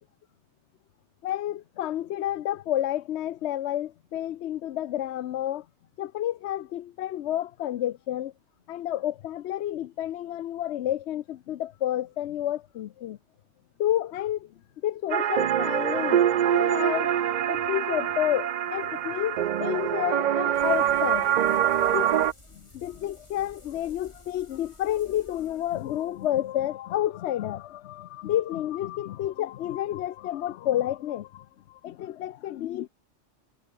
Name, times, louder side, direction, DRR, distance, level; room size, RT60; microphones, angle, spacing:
voice 1, 1.2-5.6 6.0-8.3 8.7-13.2 13.8-14.5 14.8-16.2 16.5-17.1 17.5-21.3 21.9-22.1 22.7-32.9, left 12 dB, 70° left, 0.9 m, -30 dB
sound 1, 15.1-22.3, right 10 dB, 60° right, 0.5 m, -24 dB
sound 2, 20.5-26.5, left 1 dB, 25° left, 4.1 m, -53 dB
omnidirectional pair, 1.2 m